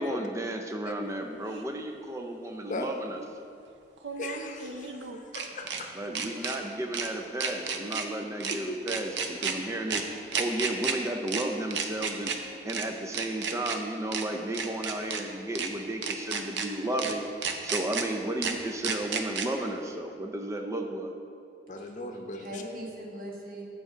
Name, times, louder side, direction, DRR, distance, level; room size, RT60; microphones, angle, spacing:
voice 1, 0.0-3.5 6.0-10.1 10.4-12.3 12.6-17.2 17.6-21.1, right 1 dB, 15° right, 4 dB, 0.4 m, -33 dB
sound 1, 1.5-1.6 4.0-5.8 6.2-6.6 6.9-7.1 7.4-8.1 8.4-8.6 8.9-9.5 9.9-10.0 10.3-10.9 11.3-11.4 11.7-12.4 12.7-12.8 13.1-13.8 14.1-14.2 14.5-15.2 15.6-15.7 16.0-16.7 17.0-17.1 17.4-18.0 18.4-18.5 18.8-19.5, right 6 dB, 80° right, 0.7 m, -31 dB
voice 2, 4.2-5.9 8.5-8.8 21.7-22.6, left 2 dB, 45° left, 4 dB, 0.8 m, -38 dB
voice 3, 21.8-23.6, right 1 dB, 50° right, -3 dB, 1.6 m, -41 dB
7.6 x 6.4 x 5.0 m, 2.4 s
head